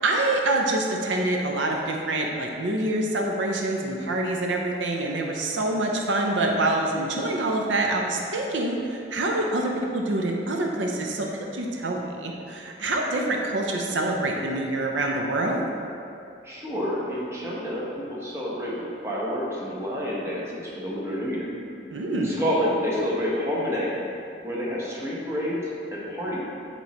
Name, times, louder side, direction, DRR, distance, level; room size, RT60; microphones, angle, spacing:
voice 1, 0.0-8.8 9.1-11.3 11.5-15.6 21.9-22.3, right 2 dB, 85° right, 1 dB, 0.6 m, -26 dB
voice 2, 16.4-21.5 22.1-23.9 24.4-25.6 25.9-26.5, equal, 15° right, -6 dB, 1.0 m, -28 dB
7.8 x 3.0 x 4.2 m, 2.6 s
head